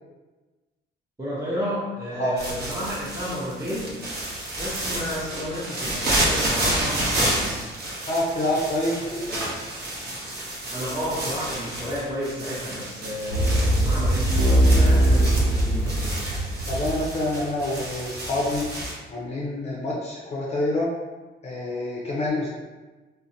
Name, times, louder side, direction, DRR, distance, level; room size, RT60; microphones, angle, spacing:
voice 1, 1.2-3.9 4.6-7.7 10.7-16.2, equal, 15° right, -8 dB, 0.6 m, -32 dB
sound 1, 2.4-18.9, right 1 dB, 55° right, 0.8 m, -30 dB
voice 2, 8.1-9.6 16.7-18.7 19.1-20.9 21.4-22.5, left 1 dB, 35° left, -4 dB, 0.5 m, -27 dB
sound 2, 13.3-17.6 18.1-18.8, right 1 dB, 85° right, 0.9 m, -21 dB
2.5 x 2.1 x 2.6 m, 1.2 s
cardioid pair, 90°, 20 cm